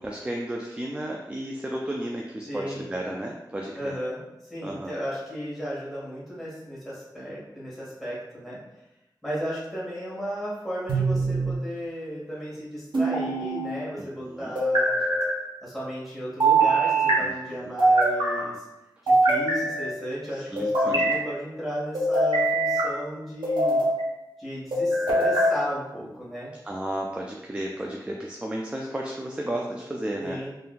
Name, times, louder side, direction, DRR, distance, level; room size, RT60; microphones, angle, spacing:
voice 1, 0.0-4.0 4.6-4.9 14.0-14.5 17.2-17.7 20.3-21.2 26.6-30.4, right 1 dB, 15° right, -1 dB, 0.3 m, -33 dB
voice 2, 2.4-2.9 3.7-8.6 9.2-15.0 15.6-18.6 19.0-23.9 24.4-26.5 30.2-30.5, equal, ahead, -8 dB, 1.4 m, -34 dB
sound 1, 10.9-11.6 12.9-13.7 14.6-15.3 16.4-17.2 17.8-18.4 19.1-19.9 20.6-21.2 21.9-22.9 23.4-24.0 24.7-25.5, right 2 dB, 90° right, 0.9 m, -22 dB
3.6 x 2.5 x 2.3 m, 0.96 s
wide cardioid pair, 85°, 8 cm